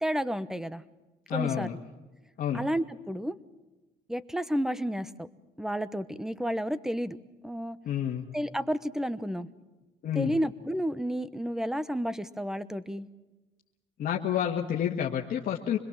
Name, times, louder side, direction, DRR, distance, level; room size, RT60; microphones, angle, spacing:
voice 1, 0.0-0.8 1.3-1.7 2.5-3.4 4.1-5.3 5.6-7.2 7.4-7.8 8.3-9.5 10.1-13.1, equal, 5° right, 16 dB, 1.0 m, -31 dB
voice 2, 1.3-1.7 2.4-2.6 7.9-8.3 10.0-10.3 14.0-15.8, left 9 dB, 55° left, 0 dB, 1.9 m, -29 dB
26.0 x 21.5 x 7.4 m, 1.1 s
cardioid pair, 110°, 17 cm